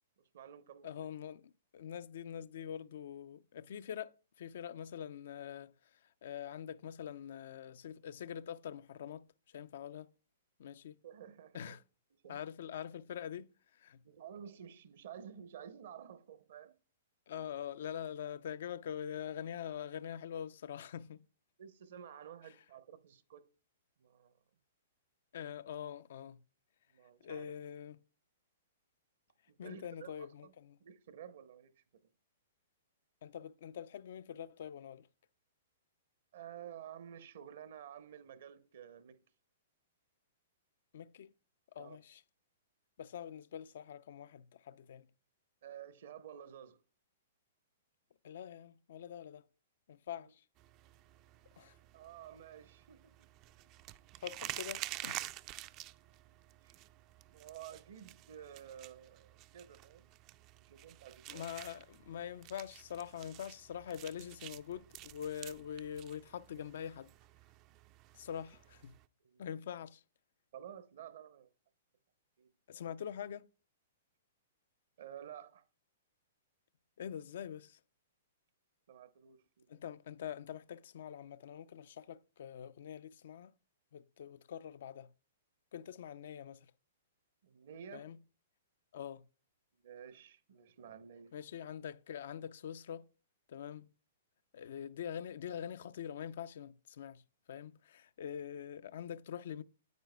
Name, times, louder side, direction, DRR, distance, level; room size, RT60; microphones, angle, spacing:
voice 1, 0.2-1.1 11.0-11.8 12.1-12.5 14.0-16.8 17.3-17.5 21.6-23.4 24.0-24.3 26.9-27.6 29.5-30.5 30.8-31.8 36.3-39.2 41.8-42.0 45.6-46.8 51.9-53.1 56.6-56.8 57.3-61.5 69.2-69.5 70.5-71.5 72.4-72.5 75.0-75.6 78.9-79.8 87.4-88.2 89.7-91.3, right 9 dB, 65° right, 0.9 m, -52 dB
voice 2, 0.8-4.1 4.4-5.7 6.2-10.1 10.6-11.0 11.5-11.8 12.3-14.0 17.3-21.2 25.3-26.4 27.2-28.0 29.6-30.8 33.2-35.1 40.9-41.3 41.7-42.2 43.0-45.1 48.2-49.4 49.9-50.4 51.6-51.7 54.2-55.3 61.3-67.1 68.1-68.9 69.4-70.0 72.7-73.5 77.0-77.8 79.7-83.5 83.9-85.1 85.7-86.7 87.9-88.2 88.9-89.2 91.3-93.1 93.5-93.9 94.5-97.2 97.5-99.6, left 9 dB, 65° left, 0.4 m, -44 dB
sound 1, 50.6-69.1, right 16 dB, 35° right, 0.4 m, -50 dB
9.3 x 9.1 x 2.2 m
hypercardioid pair, 115°, 0 cm